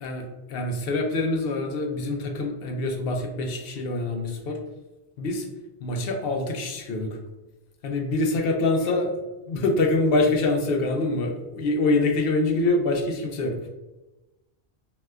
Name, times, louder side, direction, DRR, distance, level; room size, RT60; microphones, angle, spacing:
voice 1, 0.0-4.6 5.2-5.5 5.8-7.2 7.8-13.6, left 2 dB, 70° left, 3 dB, 0.7 m, -25 dB
2.8 x 2.1 x 3.4 m, 1.1 s
omnidirectional pair, 1.1 m